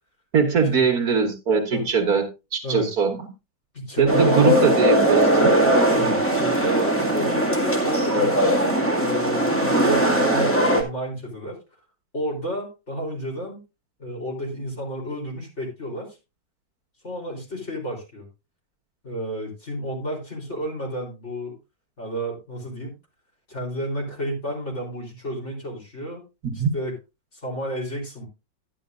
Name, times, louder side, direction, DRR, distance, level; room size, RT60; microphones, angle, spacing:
voice 1, 0.3-2.2 2.5-3.2 4.0-5.5 26.4-26.7, right 5 dB, 55° right, 3 dB, 1.8 m, -21 dB
voice 2, 3.7-4.5 5.9-11.6 12.1-13.6 14.0-16.2 17.0-18.3 19.0-21.5 22.0-22.9 23.5-26.2 26.5-27.0 27.3-28.2, equal, 35° left, -1 dB, 3.9 m, -31 dB
sound 1, 4.1-10.8, right 1 dB, 5° left, 1.8 m, -20 dB
11.0 x 10.5 x 2.5 m, 0.27 s
omnidirectional pair, 1.9 m